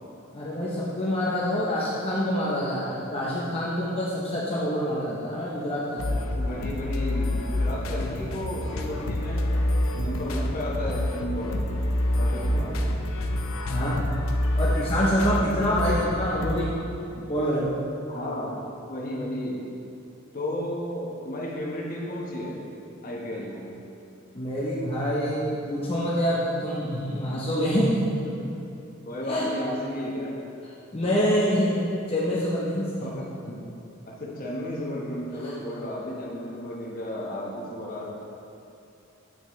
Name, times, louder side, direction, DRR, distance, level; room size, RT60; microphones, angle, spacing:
voice 1, 0.3-6.1 12.5-12.7 13.7-14.0 14.5-16.8 17.1-17.7 24.3-28.1 29.3-29.5 30.9-33.1 35.4-35.5, equal, 30° left, -7 dB, 0.8 m, -26 dB
sound 1, 6.0-16.7, left 1 dB, 75° left, 0.6 m, -27 dB
voice 2, 6.3-9.5 9.9-11.9 12.1-12.9 18.1-18.6 18.9-19.6 20.3-22.6 23.0-23.7 28.2-28.5 29.0-30.4 33.0-33.6 34.1-38.1, left 1 dB, 45° left, -3 dB, 1.1 m, -33 dB
8.7 x 5.8 x 3.1 m, 2.7 s
head